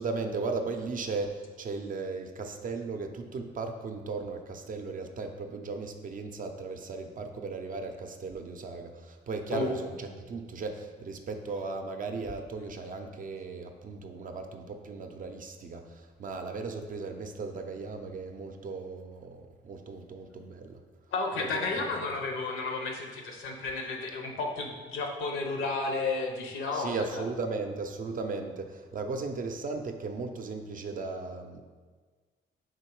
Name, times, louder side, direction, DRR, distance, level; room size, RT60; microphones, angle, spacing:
voice 1, 0.0-20.8 21.4-21.9 26.7-31.6, right 4 dB, 45° right, 5 dB, 0.5 m, -36 dB
voice 2, 21.1-27.2, left 3 dB, 80° left, 2 dB, 0.7 m, -32 dB
3.7 x 2.8 x 4.6 m, 1.4 s
cardioid pair, 90°, 20 cm